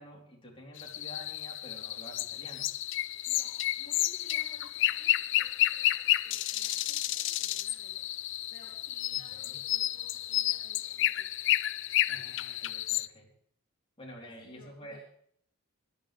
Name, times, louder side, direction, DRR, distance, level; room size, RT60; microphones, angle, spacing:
voice 1, 0.0-2.7 9.1-9.6 12.1-13.3 14.0-15.0, equal, 25° left, -2 dB, 4.0 m, -49 dB
sound 1, 0.8-13.1, left 15 dB, 55° left, 0.5 m, -31 dB
voice 2, 3.3-8.1 8.5-11.3 14.2-15.0, left 1 dB, 40° left, -3 dB, 2.8 m, -57 dB
19.5 x 11.5 x 3.5 m, 0.64 s
head